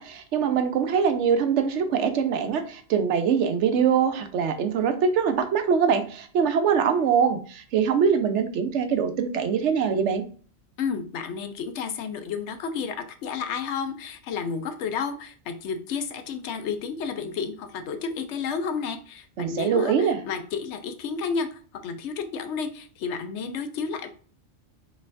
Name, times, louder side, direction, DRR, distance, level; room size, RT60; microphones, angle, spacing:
voice 1, 0.0-10.3 19.4-20.2, right 7 dB, 85° right, 8 dB, 0.9 m, -23 dB
voice 2, 10.8-24.1, left 6 dB, 80° left, 8 dB, 0.9 m, -31 dB
5.5 x 3.1 x 2.5 m, 0.43 s
omnidirectional pair, 1.2 m